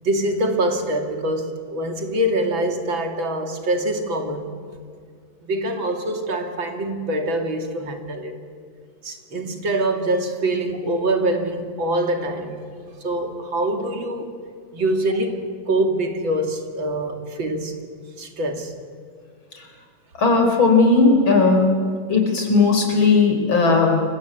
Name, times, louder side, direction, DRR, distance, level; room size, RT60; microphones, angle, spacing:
voice 1, 0.0-4.5 5.4-8.4 9.0-12.6 13.0-14.3 14.7-17.8 18.2-18.7, right 1 dB, 75° right, 4 dB, 3.3 m, -24 dB
voice 2, 20.2-21.8 22.1-24.0, left 3 dB, 80° left, 3 dB, 5.1 m, -16 dB
29.0 x 24.0 x 8.4 m, 2.1 s
omnidirectional pair, 2.2 m